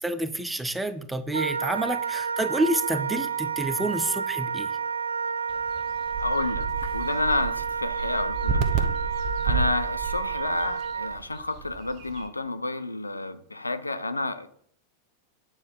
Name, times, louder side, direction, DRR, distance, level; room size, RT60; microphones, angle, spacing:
voice 1, 0.0-4.7, right 1 dB, 5° right, 13 dB, 0.5 m, -28 dB
Wind instrument woodwind instrument, 1.3-11.2, right 6 dB, 70° right, 0.3 m, -30 dB
sound 1, 5.5-12.3, right 5 dB, 45° right, 0.8 m, -31 dB
voice 2, 6.2-6.7 6.9-8.9 9.2-14.5, left 2 dB, 80° left, 11 dB, 0.5 m, -30 dB
8.6 x 4.2 x 4.6 m, 0.63 s
figure-of-eight pair, 90°, 0 cm